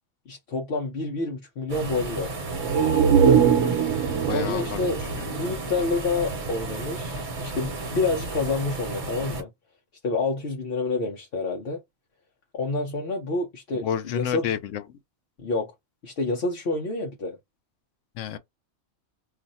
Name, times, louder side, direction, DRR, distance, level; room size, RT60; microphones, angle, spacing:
voice 1, 0.3-2.4 4.3-5.0 5.3-9.5 10.0-11.8 12.5-14.5 15.4-15.7 16.0-17.4, left 3 dB, 60° left, 0.8 m, -28 dB
sound 1, 1.7-9.4, right 2 dB, 45° right, 0.9 m, -33 dB
sound 2, 2.5-6.2 6.6-6.7, right 7 dB, 85° right, 1.0 m, -22 dB
voice 2, 4.3-4.8 5.2-5.3 13.7-15.0 18.1-18.4, left 9 dB, 90° left, 0.9 m, -30 dB
2.4 x 2.4 x 4.0 m
omnidirectional pair, 1.2 m